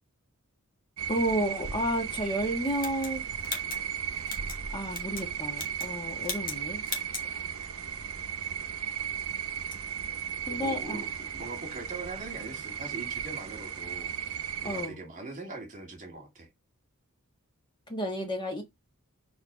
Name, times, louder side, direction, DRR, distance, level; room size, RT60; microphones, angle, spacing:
sound 1, 1.0-14.9, right 8 dB, 65° right, 0.7 m, -36 dB
voice 1, 1.1-3.2 4.7-6.8 7.3-7.5 10.5-11.0 14.6-15.0 17.9-18.6, equal, 20° left, 1.4 m, -31 dB
sound 2, 2.8-4.6 4.9-5.3 5.5-5.9 6.2-6.6 6.8-7.3, left 5 dB, 40° left, 1.7 m, -38 dB
voice 2, 10.5-11.1 11.3-14.1 14.6-16.5, right 2 dB, 35° right, 2.2 m, -41 dB
4.6 x 4.4 x 5.0 m
head